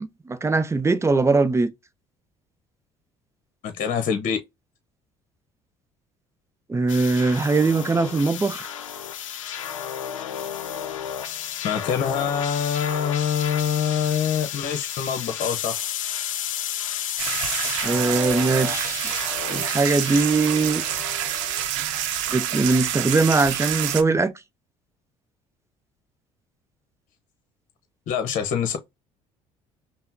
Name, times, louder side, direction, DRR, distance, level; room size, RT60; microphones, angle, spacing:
voice 1, 0.0-1.7 6.7-8.7 17.8-19.0 19.5-20.8 22.3-24.3, right 3 dB, 15° right, 0.6 m, -21 dB
voice 2, 3.6-4.4 11.6-15.9 28.1-28.8, left 7 dB, 55° left, 0.8 m, -25 dB
sound 1, 6.9-21.7, left 9 dB, 90° left, 0.4 m, -32 dB
sound 2, 17.2-24.0, right 11 dB, 80° right, 0.6 m, -27 dB
5.5 x 2.0 x 2.6 m
hypercardioid pair, 55°, 16 cm